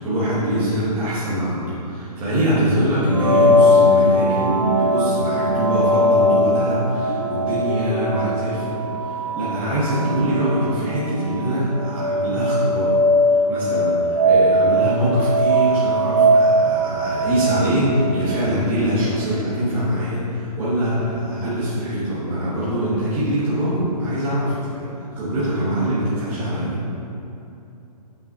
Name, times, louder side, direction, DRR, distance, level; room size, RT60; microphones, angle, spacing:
voice 1, 0.0-13.0 13.5-24.9 25.1-26.8, equal, 10° right, -11 dB, 0.9 m, -23 dB
sound 1, 3.0-18.6, equal, 85° right, 1.3 m, -20 dB
Dog, 3.5-3.8 4.1-4.2 4.4-5.1 5.7-6.0 6.3-6.4 6.5-6.6 6.8-9.7, left 6 dB, 85° left, 0.5 m, -35 dB
7.5 x 5.6 x 2.7 m, 2.8 s
hypercardioid pair, 170°, 21 cm